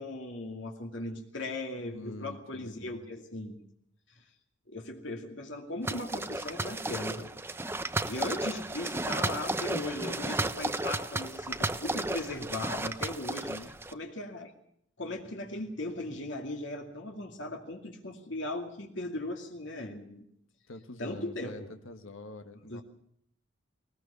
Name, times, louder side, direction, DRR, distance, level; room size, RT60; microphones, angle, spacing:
voice 1, 0.0-3.6 4.1-4.2 4.7-7.3 8.0-13.5 13.9-14.5 15.0-20.2 21.0-21.7 22.7-22.8, left 2 dB, 65° left, 3 dB, 2.5 m, -38 dB
voice 2, 1.8-3.0 13.5-13.7 20.7-22.8, left 2 dB, 80° left, 7 dB, 1.6 m, -45 dB
sound 1, 5.8-13.9, right 2 dB, 10° right, 0.7 m, -33 dB
20.5 x 20.0 x 6.9 m, 0.69 s
head